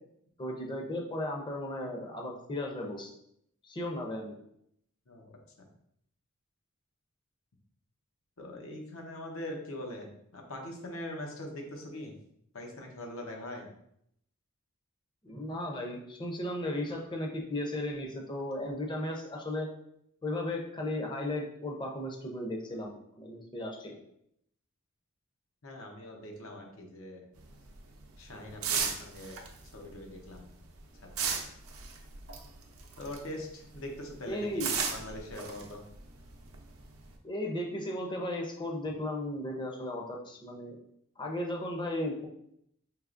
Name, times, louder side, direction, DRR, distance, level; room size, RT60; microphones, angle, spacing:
voice 1, 0.4-3.1 3.6-4.4 15.2-19.7 20.2-24.0 34.3-34.7 37.2-40.8 41.2-42.3, left 1 dB, 20° left, 1 dB, 0.6 m, -35 dB
voice 2, 5.1-5.7 8.4-12.2 12.5-13.7 25.6-27.2 28.2-29.4 29.7-30.5 31.0-31.4 33.0-35.8, left 1 dB, 75° left, 2 dB, 0.8 m, -42 dB
sound 1, 27.4-33.4 33.7-37.1, right 6 dB, 80° right, 0.6 m, -36 dB
4.7 x 2.9 x 2.5 m, 0.73 s
head